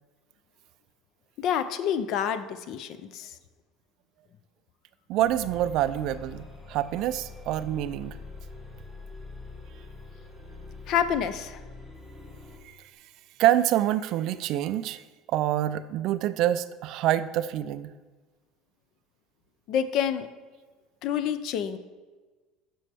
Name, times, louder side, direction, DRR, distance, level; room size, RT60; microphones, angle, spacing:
voice 1, 1.4-3.3 10.9-11.6 19.7-20.3 21.0-21.8, left 8 dB, 50° left, 12 dB, 0.5 m, -28 dB
voice 2, 5.1-8.2 13.4-17.9, right 12 dB, 50° right, 13 dB, 0.3 m, -26 dB
sound 1, 5.2-12.7, left 3 dB, 15° left, 1.5 m, -44 dB
11.0 x 6.2 x 3.4 m, 1.3 s
cardioid pair, 160°, 0 cm